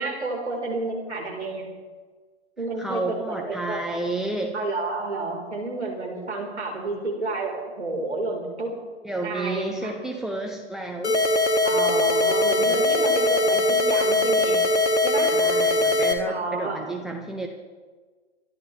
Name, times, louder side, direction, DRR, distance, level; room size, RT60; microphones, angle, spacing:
voice 1, 0.0-1.6 2.6-4.0 4.5-8.8 9.2-9.9 11.6-14.6 15.0-15.3 16.2-16.8, right 3 dB, 80° right, -1 dB, 4.7 m, -30 dB
voice 2, 2.8-4.6 9.0-11.2 15.3-17.5, right 2 dB, ahead, 2 dB, 0.9 m, -31 dB
sound 1, 11.0-16.1, left 2 dB, 80° left, 1.8 m, -21 dB
26.0 x 11.5 x 3.5 m, 1.4 s
figure-of-eight pair, 110°, 34 cm